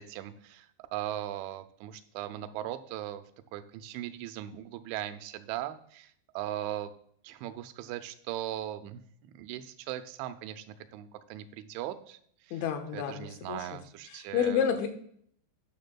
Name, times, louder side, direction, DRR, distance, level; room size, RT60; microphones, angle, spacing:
voice 1, 0.0-3.2 3.5-6.9 7.2-12.2 12.4-12.6 12.9-14.6, right 12 dB, 85° right, 9 dB, 3.0 m, -39 dB
voice 2, 12.5-13.8 14.1-14.9, left 7 dB, 80° left, 5 dB, 3.3 m, -30 dB
12.0 x 10.5 x 2.3 m, 0.63 s
omnidirectional pair, 5.4 m